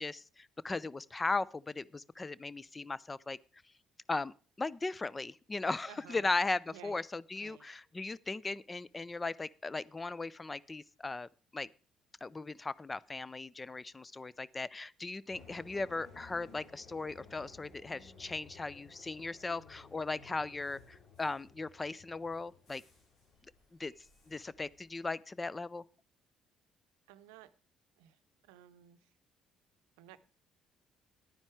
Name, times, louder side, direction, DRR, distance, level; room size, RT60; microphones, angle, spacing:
voice 1, 0.0-3.4 4.1-11.7 12.2-22.8 23.8-23.9 24.3-25.8, left 3 dB, 25° left, 0.5 m, -37 dB
voice 2, 5.9-6.3 6.7-7.0 7.4-7.7 27.1-27.5 28.0-28.2 28.4-29.0 30.0-30.2, right 13 dB, 80° right, 0.6 m, -54 dB
sound 1, 15.3-25.1, left 4 dB, 55° left, 4.7 m, -58 dB
10.5 x 9.7 x 4.7 m
hypercardioid pair, 55°, 0 cm